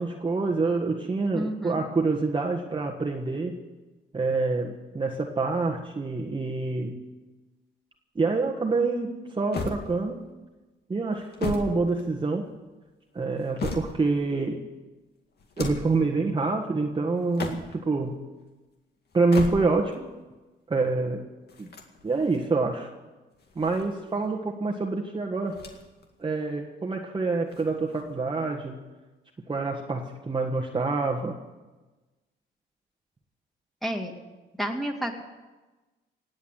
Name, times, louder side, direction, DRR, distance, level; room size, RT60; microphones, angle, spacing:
voice 1, 0.0-3.6 4.1-7.0 8.1-10.3 10.9-12.5 13.1-14.7 15.6-18.2 19.1-20.1 20.7-21.2 21.6-21.7 22.0-22.9 23.5-25.6 26.2-28.8 29.5-31.4, right 3 dB, 25° right, 1 dB, 1.5 m, -27 dB
voice 2, 1.3-1.8 33.8-34.1 34.6-35.2, equal, ahead, 2 dB, 2.3 m, -30 dB
sound 1, 9.5-10.3 11.1-12.5 13.2-14.2 15.4-16.0 17.2-17.9 19.1-20.0 21.5-22.4 23.3-24.3 25.5-26.1 26.4-26.5 27.5-28.2, left 4 dB, 55° left, 2.2 m, -36 dB
18.5 x 8.2 x 9.3 m, 1.2 s
cardioid pair, 90°, 20 cm